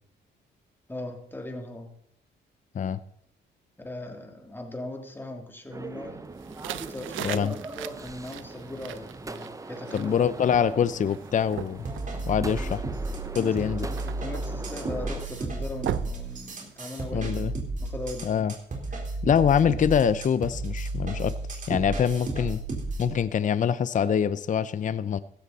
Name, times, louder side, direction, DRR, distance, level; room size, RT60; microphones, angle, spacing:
voice 1, 0.9-1.9 3.8-6.2 6.7-10.1 12.5-12.7 13.4-18.3 18.9-19.0, left 1 dB, 10° left, 2 dB, 3.0 m, -39 dB
sound 1, 5.7-15.3, right 3 dB, 15° right, 0.8 m, -40 dB
sound 2, 6.4-17.1, right 12 dB, 80° right, 0.7 m, -40 dB
voice 2, 7.2-7.5 9.9-11.8 12.3-12.8 13.4-13.9 17.1-17.5 18.3-18.5 19.2-21.3 21.7-22.6 23.0-25.2, left 8 dB, 40° left, 15 dB, 0.6 m, -24 dB
sound 3, 11.8-23.1, right 2 dB, 40° right, 3.9 m, -33 dB
15.5 x 13.0 x 4.1 m, 0.68 s
cardioid pair, 90°, 20 cm